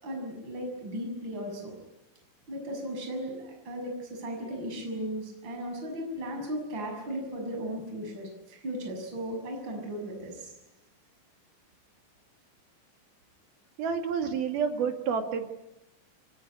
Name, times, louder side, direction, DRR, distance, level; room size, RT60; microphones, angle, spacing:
voice 1, 0.0-1.7 2.5-10.5, equal, 20° right, 2 dB, 6.9 m, -36 dB
voice 2, 13.8-15.5, right 6 dB, 55° right, 5 dB, 3.8 m, -29 dB
24.5 x 20.5 x 9.6 m, 0.89 s
omnidirectional pair, 5.9 m